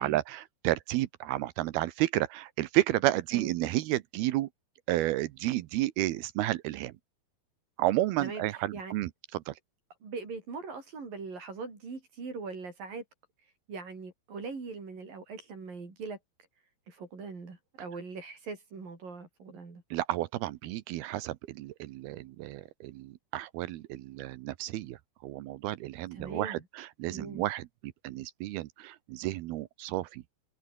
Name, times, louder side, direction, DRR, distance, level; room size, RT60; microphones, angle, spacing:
voice 1, 0.0-4.5 4.9-6.9 7.8-9.5 19.9-25.0 25.2-27.6 28.0-30.2, right 16 dB, 75° right, 2.5 m, -31 dB
voice 2, 8.2-8.9 10.0-13.0 13.7-16.2 16.9-19.8 26.1-26.7 27.1-27.5, right 4 dB, 55° right, 7.4 m, -41 dB
omnidirectional pair, 4.9 m